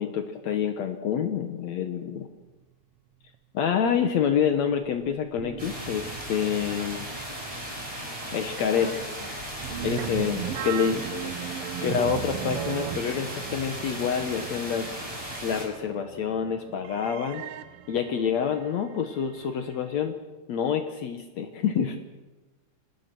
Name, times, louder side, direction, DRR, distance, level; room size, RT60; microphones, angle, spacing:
voice 1, 0.0-2.3 3.5-7.1 8.3-8.9 9.8-11.0 11.8-14.9 15.4-17.4 17.9-20.2 20.5-22.0, left 8 dB, 65° left, 6 dB, 2.3 m, -27 dB
sound 1, 4.8-6.5 6.7-7.0 7.5-7.7 9.4-20.1, right 11 dB, 65° right, 1.5 m, -37 dB
sound 2, 5.6-15.7, right 1 dB, 10° right, 5.6 m, -37 dB
voice 2, 8.7-9.3 9.7-11.8, left 3 dB, 15° left, 2 dB, 2.8 m, -44 dB
26.5 x 18.0 x 6.1 m, 1.1 s
omnidirectional pair, 3.5 m